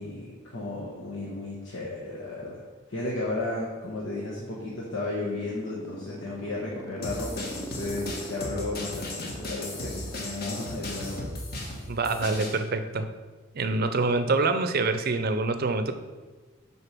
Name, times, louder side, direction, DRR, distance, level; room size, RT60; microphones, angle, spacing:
voice 1, 0.0-2.6 2.9-11.2, left 2 dB, 85° left, -6 dB, 1.3 m, -34 dB
sound 1, 4.6-11.1, equal, 15° left, 0.7 m, -42 dB
sound 2, 7.0-12.6, left 2 dB, 50° left, 1.3 m, -36 dB
voice 2, 11.9-13.1 13.5-15.9, right 3 dB, 50° right, 9 dB, 0.5 m, -26 dB
6.6 x 4.4 x 6.0 m, 1.3 s
head